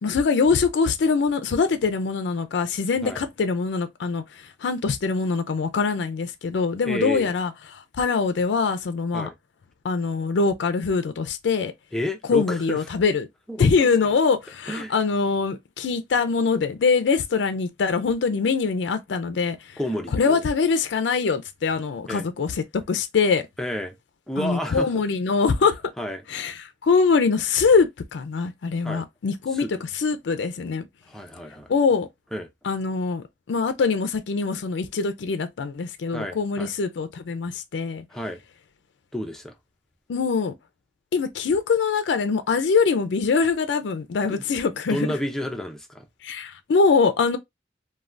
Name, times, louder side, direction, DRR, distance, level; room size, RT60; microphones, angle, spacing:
voice 1, 0.0-9.3 9.8-11.7 12.3-13.3 13.6-19.8 20.1-23.5 24.4-25.8 26.3-30.8 31.7-32.1 32.6-38.0 40.1-40.5 41.1-45.1 46.2-47.4, left 5 dB, 75° left, 0.4 m, -23 dB
voice 2, 6.8-7.3 9.1-9.4 11.9-12.8 13.5-13.9 14.7-14.9 19.8-20.4 22.1-22.3 23.6-23.9 24.3-25.0 26.0-26.2 28.8-29.0 29.5-29.7 31.1-31.7 32.3-32.5 36.1-36.7 38.1-38.4 39.1-39.5 44.2-44.4 44.9-46.1, equal, ahead, 0.5 m, -30 dB
2.5 x 2.2 x 3.2 m
head